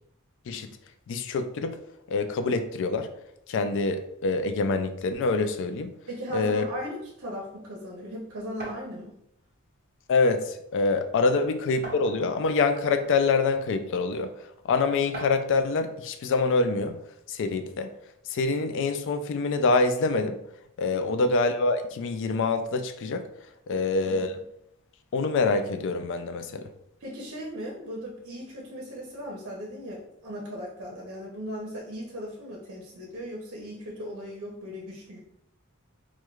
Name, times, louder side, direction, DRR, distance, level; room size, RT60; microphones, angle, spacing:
voice 1, 1.1-1.8 2.1-3.1 3.5-5.9 6.3-6.7 10.1-14.3 14.6-17.0 17.3-17.9 18.3-20.4 20.8-23.3 23.7-24.4 25.1-26.7, left 3 dB, 60° left, 9 dB, 0.3 m, -25 dB
voice 2, 6.1-9.1 20.9-21.2 23.7-24.4 27.0-35.2, equal, 65° right, -3 dB, 0.7 m, -38 dB
sound 1, 8.6-8.9 10.0-10.1 10.5-10.6 11.8-12.5 13.3-13.4 15.1-15.5, right 1 dB, 45° right, 1.3 m, -39 dB
4.5 x 2.2 x 2.3 m, 0.76 s
head